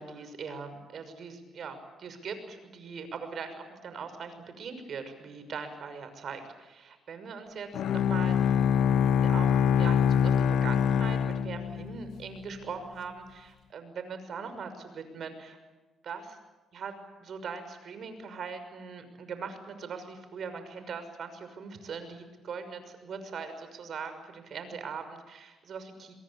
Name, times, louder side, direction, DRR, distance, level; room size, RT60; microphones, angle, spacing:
voice 1, 0.0-8.6 9.0-15.6 16.0-16.4 16.7-16.9 17.2-26.1, right 5 dB, 60° right, 9 dB, 6.0 m, -41 dB
Bowed string instrument, 7.7-12.2, left 8 dB, 75° left, 1.1 m, -24 dB
24.5 x 23.0 x 8.6 m, 1.2 s
cardioid pair, 90°, 0 cm